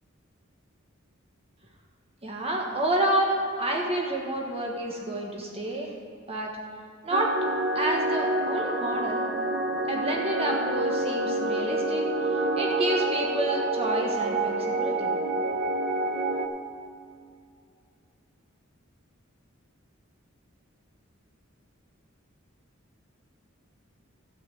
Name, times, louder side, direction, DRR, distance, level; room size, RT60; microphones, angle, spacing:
voice 1, 2.2-5.9 6.3-6.5 7.0-7.3 7.7-9.2 9.9-12.0 12.6-15.1, right 1 dB, 30° right, -1 dB, 1.4 m, -29 dB
sound 1, 7.1-16.5, right 2 dB, 55° right, 0.9 m, -27 dB
12.5 x 5.6 x 8.3 m, 2.4 s
head